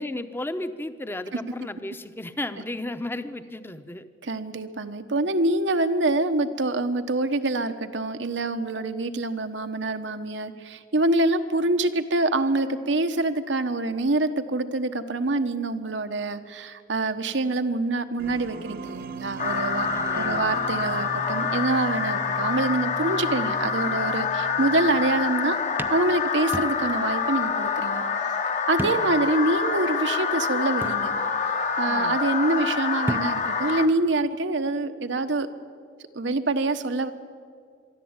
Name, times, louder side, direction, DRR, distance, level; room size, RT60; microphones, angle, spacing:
voice 1, 0.0-4.1 19.9-20.6 23.1-23.2 28.8-29.3 31.9-32.2, left 1 dB, 10° left, 10 dB, 0.8 m, -34 dB
voice 2, 4.2-19.9 20.1-25.6 25.9-28.0 28.7-31.1 31.5-35.5 36.1-37.1, right 2 dB, 85° right, 8 dB, 1.1 m, -25 dB
sound 1, 18.2-25.2, right 2 dB, 55° right, 0.9 m, -39 dB
sound 2, 19.4-33.9, left 5 dB, 45° left, 1.0 m, -27 dB
sound 3, 25.2-25.3 25.8-27.2 27.5-27.6 28.8-29.3 29.7-29.8 30.8-31.6 32.7-32.8 33.1-33.7, right 1 dB, 10° right, 0.4 m, -34 dB
23.5 x 13.0 x 8.8 m, 2.1 s
head